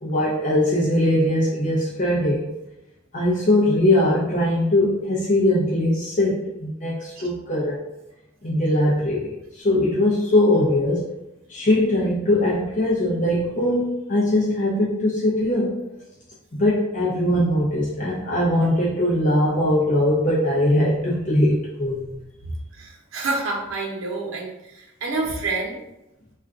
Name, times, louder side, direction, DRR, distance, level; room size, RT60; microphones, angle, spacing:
voice 1, 0.0-2.5 3.1-7.8 8.4-11.1 11.5-15.7 16.5-22.2, left 1 dB, 35° left, -7 dB, 0.5 m, -21 dB
voice 2, 22.7-25.8, right 3 dB, 80° right, -2 dB, 0.8 m, -28 dB
2.4 x 2.3 x 3.6 m, 0.91 s
head